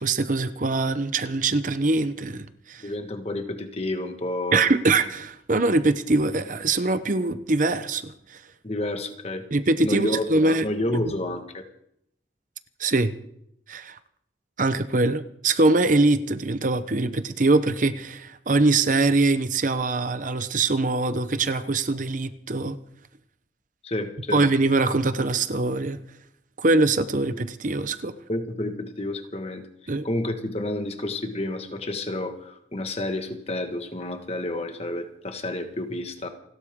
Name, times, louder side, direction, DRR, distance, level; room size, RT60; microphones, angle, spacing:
voice 1, 0.0-2.8 4.5-8.4 9.5-10.6 11.0-11.1 12.8-13.1 13.7-14.0 14.6-22.8 24.3-26.0 26.6-28.1 29.9-30.1, right 3 dB, 45° right, 11 dB, 0.8 m, -23 dB
voice 2, 2.8-4.6 8.6-9.5 9.8-11.6 23.8-24.4 28.3-29.7 30.0-36.3, left 1 dB, 35° left, 7 dB, 1.6 m, -30 dB
29.0 x 12.5 x 3.7 m, 0.76 s
head